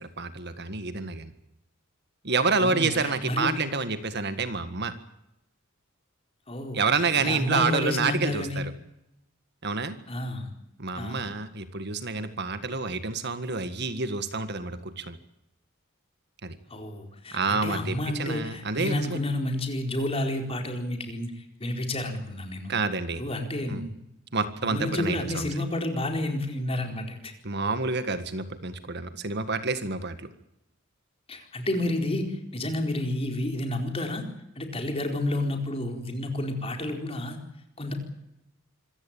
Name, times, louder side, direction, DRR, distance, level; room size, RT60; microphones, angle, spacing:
voice 1, 0.0-1.3 2.2-4.9 6.7-8.7 9.6-10.0 10.8-15.2 16.4-16.6 17.3-19.2 22.7-23.2 23.7-23.8 24.3-25.5 27.4-30.3, right 4 dB, 55° right, 11 dB, 1.8 m, -28 dB
voice 2, 2.6-3.6 6.5-8.6 10.1-10.5 10.9-11.3 16.7-22.7 23.2-23.9 24.6-27.3 31.3-34.2 34.6-37.4 37.8-37.9, left 1 dB, 30° left, 4 dB, 4.4 m, -30 dB
26.0 x 15.5 x 9.1 m, 0.86 s
head